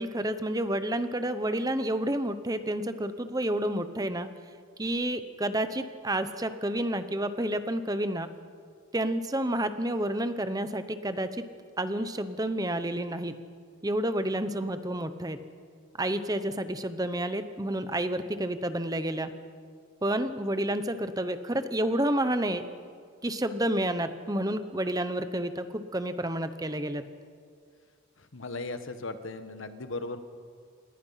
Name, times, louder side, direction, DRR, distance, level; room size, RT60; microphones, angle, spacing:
voice 1, 0.0-4.3 4.8-8.3 8.9-11.3 11.8-13.3 13.8-15.4 16.0-19.3 20.0-22.6 23.2-25.7 25.9-27.0, right 1 dB, 20° right, 10 dB, 0.9 m, -29 dB
voice 2, 28.2-30.2, left 3 dB, 70° left, 10 dB, 1.4 m, -37 dB
28.0 x 20.0 x 5.8 m, 2.1 s
head